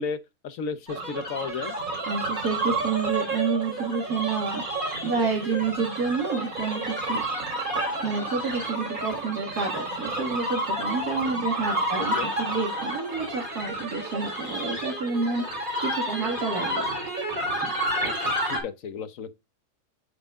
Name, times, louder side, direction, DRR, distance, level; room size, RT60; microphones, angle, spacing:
voice 1, 0.0-1.8 12.1-12.3 18.0-19.3, left 5 dB, 60° left, 1.3 m, -34 dB
sound 1, 0.9-18.6, right 1 dB, 60° right, 4.3 m, -30 dB
voice 2, 2.1-7.2 8.0-16.8 17.6-17.7, right 4 dB, 75° right, 2.5 m, -29 dB
11.5 x 5.5 x 2.4 m
omnidirectional pair, 1.6 m